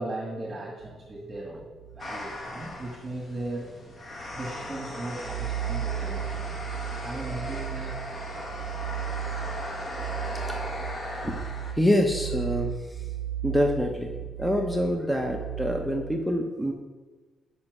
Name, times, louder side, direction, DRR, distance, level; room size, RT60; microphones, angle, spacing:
voice 1, 0.0-1.7 1.9-3.7 4.3-6.6 7.0-8.0, right 2 dB, 30° right, 0 dB, 1.6 m, -37 dB
sound 1, 0.8-2.9 3.4-3.5 4.0-16.2, right 10 dB, 85° right, 0.5 m, -35 dB
sound 2, 2.0-11.7, left 1 dB, 35° left, 1.6 m, -38 dB
voice 2, 11.7-13.0 13.4-16.7, equal, 5° left, 3 dB, 0.9 m, -26 dB
7.4 x 5.4 x 6.1 m, 1.3 s
cardioid pair, 85°, 0 cm